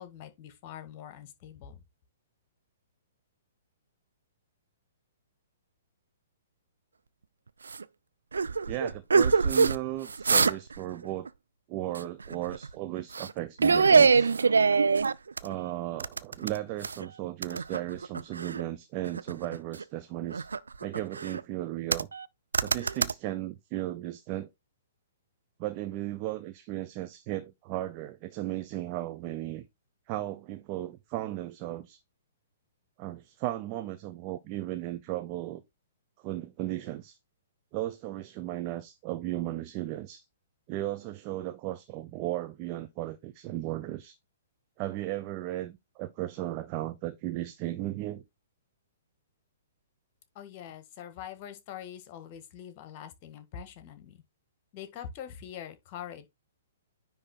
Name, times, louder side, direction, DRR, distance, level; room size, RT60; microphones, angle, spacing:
voice 1, 0.0-1.8 50.3-54.2 54.7-56.3, left 9 dB, 40° left, 1.5 m, -44 dB
sound 1, 7.7-7.8 8.3-9.8 10.1-10.8 11.0-11.3 12.0-12.7 13.1-13.3 13.6-15.5 16.0-17.1 17.4-18.6 19.0-19.8 20.3-21.4 21.9-22.3 22.5-23.1, right 5 dB, 75° right, 0.4 m, -24 dB
voice 2, 8.7-11.3 11.7-14.3 15.4-20.4 20.8-22.1 22.6-24.5 25.6-29.6 30.1-32.0 33.0-35.6 36.2-37.2 37.7-40.2 40.7-44.2 44.8-48.2, right 15 dB, 35° right, 0.7 m, -35 dB
9.9 x 3.4 x 4.3 m
figure-of-eight pair, 115°, 0 cm